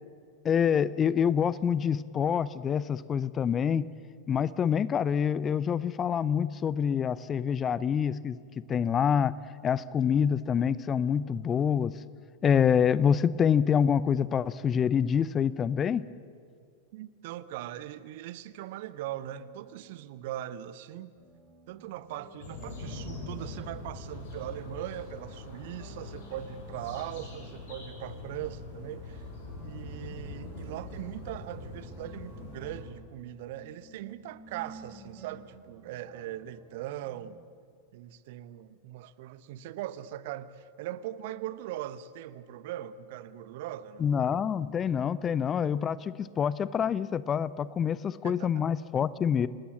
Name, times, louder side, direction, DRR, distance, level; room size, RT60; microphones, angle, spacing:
voice 1, 0.4-3.9 4.3-8.4 8.7-9.4 9.6-12.0 12.4-16.0 44.0-49.5, left 7 dB, 25° left, 0.6 m, -26 dB
voice 2, 16.9-21.1 21.7-29.2 29.6-37.4 37.9-44.1 48.2-48.6, right 12 dB, 50° right, 1.0 m, -40 dB
sound 1, 19.3-20.1 21.2-37.4, right 3 dB, 20° right, 4.1 m, -55 dB
sound 2, 22.4-32.8, left 2 dB, 55° left, 7.2 m, -43 dB
27.5 x 20.0 x 7.5 m
figure-of-eight pair, 90°, 0 cm